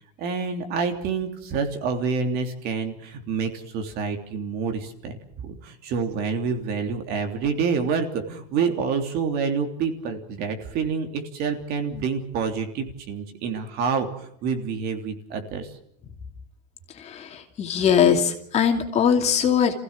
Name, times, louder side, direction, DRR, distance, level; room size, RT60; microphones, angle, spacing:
voice 1, 0.2-15.7, right 5 dB, 50° right, 5 dB, 3.2 m, -27 dB
voice 2, 17.0-19.7, left 7 dB, 30° left, 4 dB, 2.7 m, -21 dB
27.0 x 16.0 x 7.5 m, 0.72 s
supercardioid pair, 140°, 21 cm